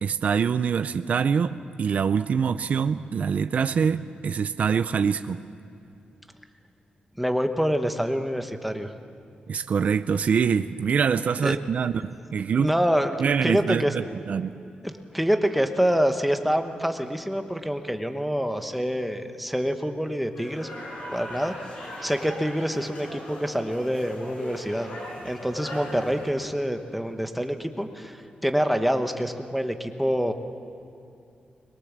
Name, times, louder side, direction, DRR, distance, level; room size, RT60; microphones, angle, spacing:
voice 1, 0.0-5.4 9.5-12.7 13.2-14.5, right 6 dB, 55° right, 11 dB, 0.5 m, -25 dB
voice 2, 7.2-8.9 11.4-11.6 12.6-13.9 14.8-20.7 21.1-21.5 22.0-24.9 25.2-28.2 28.4-30.3, equal, ahead, 6 dB, 1.1 m, -26 dB
sound 1, 20.3-26.3, left 1 dB, 55° left, 7.2 m, -39 dB
22.0 x 21.5 x 7.4 m, 2.6 s
wide cardioid pair, 155°, 3 cm